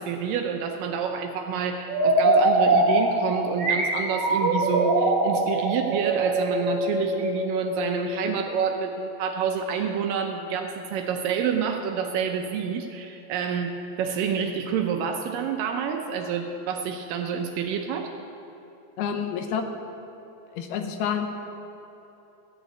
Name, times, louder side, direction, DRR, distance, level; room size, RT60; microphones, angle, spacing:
voice 1, 0.0-18.1, right 6 dB, 75° right, 4 dB, 2.1 m, -28 dB
sound 1, 1.8-8.5, right 2 dB, 50° right, 1.4 m, -23 dB
voice 2, 19.0-19.7 20.5-21.3, left 7 dB, 80° left, 6 dB, 2.8 m, -28 dB
14.5 x 7.0 x 8.4 m, 3.0 s
omnidirectional pair, 4.5 m